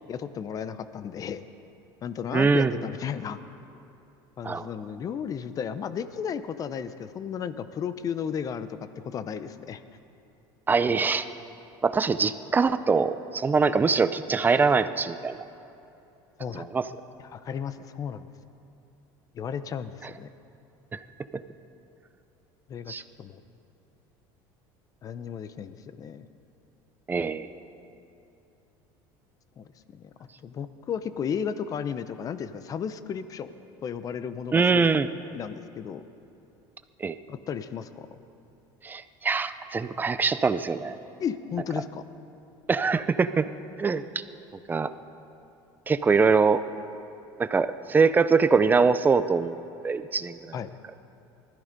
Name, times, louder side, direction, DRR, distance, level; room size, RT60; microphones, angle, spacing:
voice 1, 0.1-1.4 2.0-3.4 4.4-9.8 16.4-16.7 17.2-18.3 19.3-20.3 22.7-22.9 23.2-23.4 25.0-26.2 29.6-30.0 30.4-33.5 33.8-34.9 35.3-36.0 37.3-38.1 41.2-42.0 50.5-50.7, left 7 dB, 35° left, 12 dB, 0.7 m, -34 dB
voice 2, 2.3-2.7 4.4-4.7 10.7-11.2 11.8-15.4 16.6-16.8 20.9-21.0 22.9-23.0 27.1-27.5 34.5-35.1 37.0-37.2 38.8-41.0 42.7-43.5 43.8-44.0 44.7-44.9 45.9-46.6 47.4-49.5 49.8-50.4, right 4 dB, 20° right, 12 dB, 0.5 m, -23 dB
19.0 x 13.5 x 5.3 m, 2.8 s
cardioid pair, 130°, 10 cm